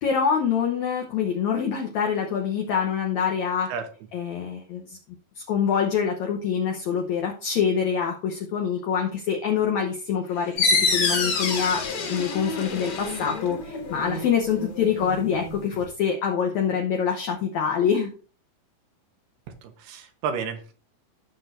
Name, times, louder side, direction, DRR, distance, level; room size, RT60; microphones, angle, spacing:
voice 1, 0.0-3.7 4.1-5.0 5.3-11.8 12.1-18.1, left 7 dB, 70° left, 2 dB, 1.8 m, -25 dB
Sink (filling or washing), 10.3-14.2, left 8 dB, 90° left, 1.5 m, -39 dB
sound 1, 10.6-15.8, left 3 dB, 50° left, 3.0 m, -27 dB
voice 2, 19.6-20.7, right 6 dB, 85° right, 6 dB, 3.2 m, -31 dB
17.0 x 6.1 x 2.6 m, 0.38 s
omnidirectional pair, 4.4 m